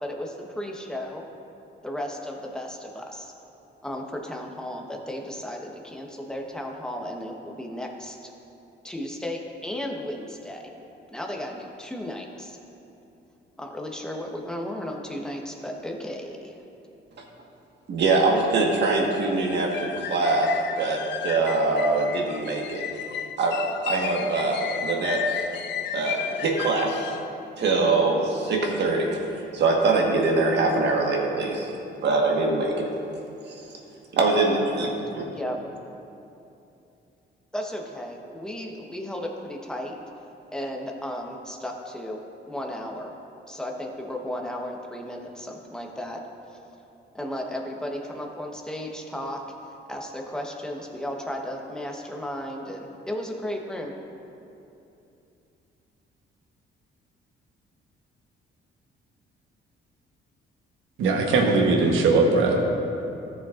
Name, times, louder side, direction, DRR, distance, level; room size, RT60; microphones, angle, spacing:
voice 1, 0.0-1.2 1.8-3.3 3.8-8.3 8.8-10.6 11.1-12.6 13.6-16.5 35.2-35.6 37.5-40.0 40.5-42.2 42.5-43.1 43.5-46.2 47.1-49.4 49.9-53.9, left 1 dB, 5° left, 0 dB, 1.1 m, -34 dB
voice 2, 17.9-22.8 23.4-23.6 23.8-25.4 25.9-27.2 27.6-29.2 29.5-31.7 32.0-32.9 33.5-33.6 34.1-35.3, right 3 dB, 60° right, 0 dB, 1.5 m, -23 dB
sound 1, 19.4-27.3, left 8 dB, 65° left, 0.5 m, -33 dB
voice 3, 61.0-62.6, right 3 dB, 85° right, 1 dB, 1.2 m, -20 dB
14.0 x 6.9 x 2.5 m, 2.8 s
cardioid pair, 90°, 20 cm